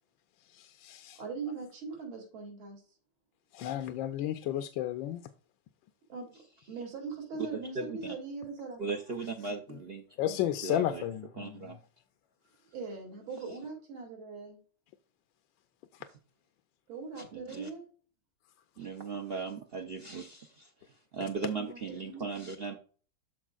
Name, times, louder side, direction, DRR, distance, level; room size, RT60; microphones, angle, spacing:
voice 1, 0.5-1.2 3.5-5.3 10.2-11.8, left 12 dB, 75° left, 1.3 m, -33 dB
voice 2, 1.2-2.8 6.1-6.4 6.7-8.8 12.7-14.6 16.9-17.9 21.5-22.2, right 4 dB, 85° right, 3.6 m, -41 dB
voice 3, 7.5-8.1 8.8-10.0 10.3-10.4 10.6-11.0 11.4-11.8 17.2-17.7 18.8-22.8, right 4 dB, 65° right, 0.5 m, -38 dB
13.5 x 4.6 x 2.4 m
omnidirectional pair, 2.2 m